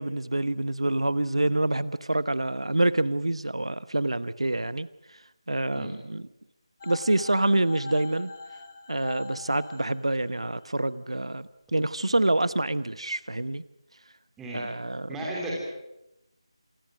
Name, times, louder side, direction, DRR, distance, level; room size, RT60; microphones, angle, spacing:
voice 1, 0.0-4.9 5.5-6.2 6.8-8.3 8.9-13.6 14.5-15.1, right 2 dB, 70° right, 16 dB, 1.1 m, -26 dB
sound 1, 6.8-10.6 11.8-12.0, left 4 dB, 30° left, 2.3 m, -42 dB
voice 2, 15.1-15.5, right 1 dB, 5° right, -4 dB, 3.5 m, -34 dB
27.5 x 22.0 x 6.5 m, 0.91 s
figure-of-eight pair, 160°, 3 cm